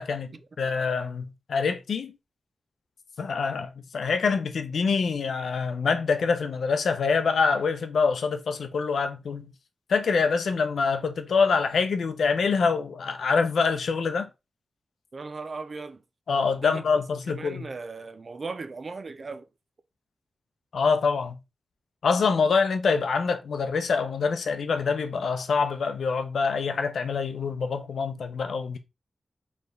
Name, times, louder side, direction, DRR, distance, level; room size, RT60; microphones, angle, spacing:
voice 1, 0.0-2.2 3.2-9.5 9.9-14.3 16.3-17.7 20.7-21.4 22.0-28.8, left 5 dB, 80° left, 0.6 m, -25 dB
voice 2, 15.1-16.0 16.4-16.8 17.3-19.5, right 4 dB, 40° right, 0.4 m, -37 dB
4.3 x 3.4 x 3.2 m
wide cardioid pair, 160°, 0 cm